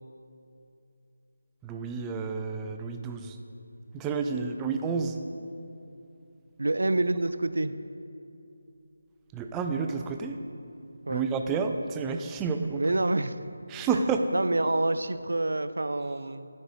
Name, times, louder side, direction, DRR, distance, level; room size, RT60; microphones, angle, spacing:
voice 1, 1.6-3.4 3.9-5.2 9.3-10.4 11.1-12.8 13.7-14.3, right 5 dB, 10° right, 5 dB, 0.4 m, -30 dB
voice 2, 6.6-7.8 11.1-11.2 12.7-13.4 13.9-14.0 14.3-16.5, right 2 dB, 80° right, 12 dB, 0.4 m, -27 dB
15.0 x 5.3 x 3.2 m, 2.6 s
figure-of-eight pair, 165°, 0 cm